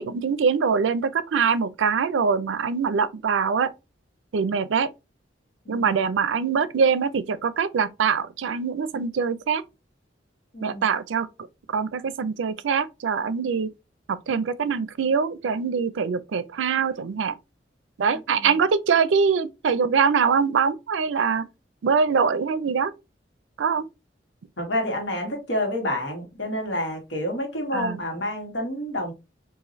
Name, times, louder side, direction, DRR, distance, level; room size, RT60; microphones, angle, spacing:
voice 1, 0.0-3.7 4.3-4.9 5.7-9.6 10.6-11.3 11.7-13.7 14.1-17.4 18.0-21.4 21.8-22.9 23.6-23.8 27.7-28.0, right 6 dB, 85° right, 0.4 m, -23 dB
voice 2, 5.6-6.0 10.5-10.8 18.3-18.5 24.6-29.1, left 1 dB, 80° left, 1.3 m, -29 dB
4.0 x 2.5 x 3.0 m
head